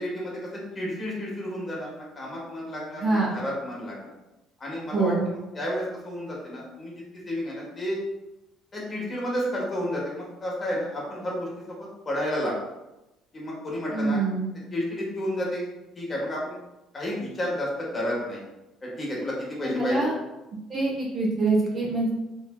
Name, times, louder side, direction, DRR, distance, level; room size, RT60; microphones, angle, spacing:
voice 1, 0.0-4.1 4.6-8.0 8.7-12.6 13.3-14.2 14.7-15.7 15.9-16.6 16.9-18.4 18.8-20.1, equal, 35° left, -4 dB, 1.4 m, -31 dB
voice 2, 3.0-3.3 4.9-5.2 13.9-14.5 19.6-20.1 20.7-22.2, right 3 dB, 40° right, -3 dB, 1.1 m, -25 dB
3.2 x 3.2 x 2.3 m, 0.97 s
hypercardioid pair, 65°, 0 cm